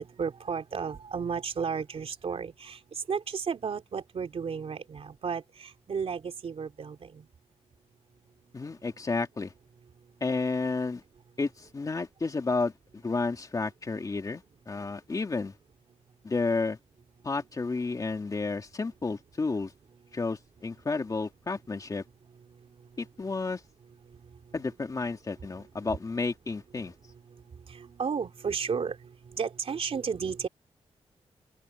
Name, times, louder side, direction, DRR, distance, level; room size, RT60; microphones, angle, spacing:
voice 1, 0.0-2.8 3.1-7.2 27.7-29.0 29.3-30.5, right 6 dB, 60° right, 3.3 m, -33 dB
voice 2, 8.5-9.5 10.2-11.0 11.4-15.5 16.2-16.8 17.2-19.7 20.1-22.0 23.0-23.6 24.5-26.9, left 3 dB, 30° left, 2.8 m, -31 dB
open air
wide cardioid pair, 150°, 11 cm